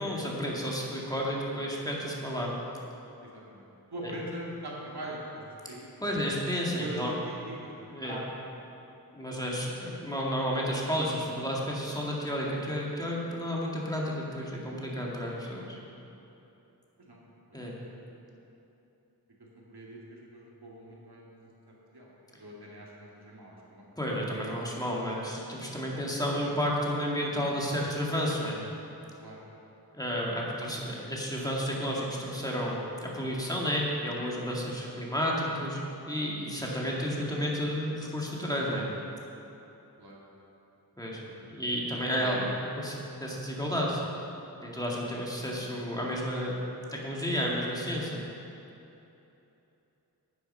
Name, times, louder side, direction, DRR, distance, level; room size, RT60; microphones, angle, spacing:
voice 1, 0.0-2.5 4.0-4.1 6.0-7.1 7.9-8.2 9.1-15.8 17.5-17.8 24.0-28.6 29.9-35.8 36.1-38.9 41.0-41.2 41.5-42.5 42.8-44.0 44.6-46.6 46.9-48.2, equal, 10° left, -4 dB, 2.0 m, -31 dB
voice 2, 3.2-5.9 6.3-6.4 6.8-8.2 17.0-17.2 17.5-18.2 19.6-24.1 29.2-29.4 30.5-30.7 36.5-36.8 37.1-37.4 40.0-40.2 41.2-41.6 42.2-42.5 45.2-45.3, right 1 dB, 80° right, -4 dB, 2.3 m, -43 dB
10.0 x 9.5 x 5.5 m, 2.9 s
wide cardioid pair, 60°, 39 cm